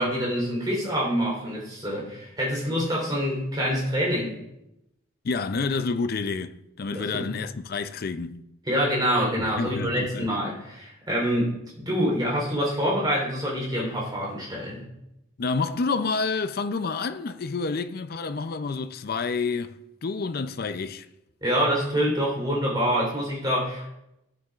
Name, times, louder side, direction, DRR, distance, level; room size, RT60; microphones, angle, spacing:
voice 1, 0.0-4.4 6.9-7.3 8.7-14.9 21.4-23.9, equal, 20° right, 3.6 m, -26 dB
voice 2, 5.2-8.4 9.4-10.3 15.4-19.8 20.0-21.1, left 4 dB, 50° left, 0.5 m, -29 dB
13.0 x 9.3 x 2.4 m
head